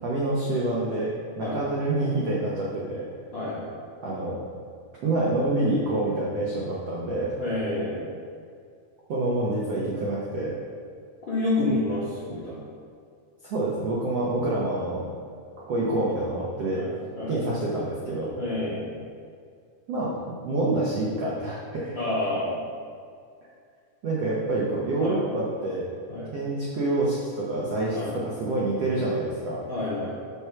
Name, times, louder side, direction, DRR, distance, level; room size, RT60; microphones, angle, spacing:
voice 1, 0.0-3.1 4.0-4.4 5.0-7.3 9.1-10.6 13.4-15.1 15.7-16.8 17.3-18.3 19.9-20.1 20.4-21.9 24.0-25.9 26.3-29.6, right 2 dB, 85° right, -5 dB, 1.4 m, -27 dB
voice 2, 3.3-3.7 7.4-8.1 11.3-12.6 16.7-16.9 17.2-17.3 18.3-19.0 21.9-22.6 25.0-25.1 26.1-26.3 27.9-28.1 29.7-30.1, left 2 dB, 45° left, -10 dB, 1.6 m, -28 dB
6.7 x 6.2 x 6.0 m, 2.3 s
omnidirectional pair, 4.7 m